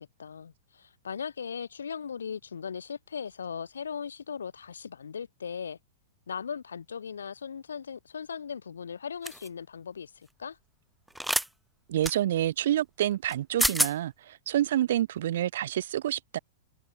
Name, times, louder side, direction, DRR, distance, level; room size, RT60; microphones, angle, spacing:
voice 1, 0.0-5.8 6.3-10.6, left 7 dB, 80° left, 2.0 m, -38 dB
sound 1, 9.3-9.5 11.2-11.5 12.0-12.2 13.3-13.4 13.6-13.9, right 1 dB, 5° right, 0.4 m, -26 dB
voice 2, 11.9-16.4, right 12 dB, 65° right, 0.6 m, -28 dB
open air
hypercardioid pair, 110°, 0 cm